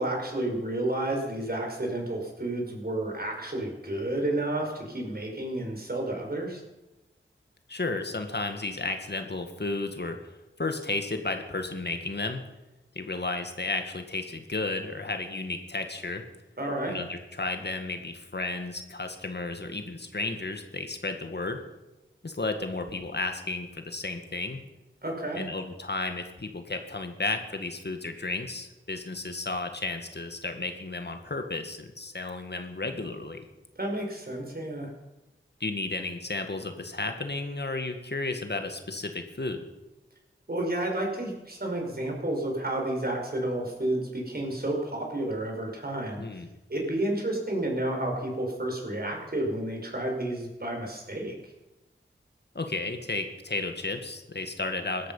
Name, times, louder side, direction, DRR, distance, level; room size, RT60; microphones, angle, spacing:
voice 1, 0.0-6.6 16.6-17.0 25.0-25.4 33.8-34.9 40.5-46.4 46.7-51.5, right 1 dB, 50° right, 1 dB, 5.4 m, -31 dB
voice 2, 7.7-12.4 13.0-16.2 16.9-21.6 22.2-24.6 25.3-33.4 35.6-39.7 46.2-46.5 52.6-55.1, left 3 dB, 55° left, 6 dB, 1.8 m, -33 dB
17.5 x 13.0 x 5.6 m, 1.0 s
wide cardioid pair, 45°, 21 cm